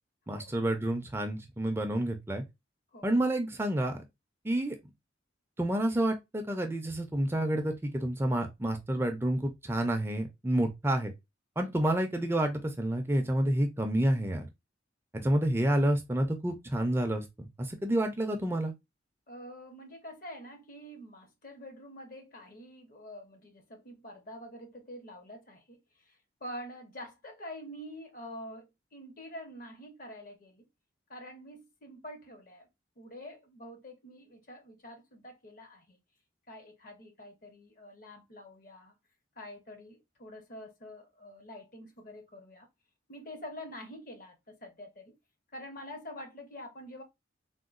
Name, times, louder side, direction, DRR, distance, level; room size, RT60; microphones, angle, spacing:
voice 1, 0.3-2.4 3.0-4.0 4.4-4.8 5.6-11.1 11.6-14.5 15.1-18.7, right 1 dB, 15° right, 0.4 m, -29 dB
voice 2, 19.3-30.7 31.1-32.7 33.0-36.0 36.5-38.9 39.4-42.7 43.1-45.2 45.5-47.0, equal, 50° left, 0.8 m, -46 dB
3.6 x 2.2 x 2.3 m
head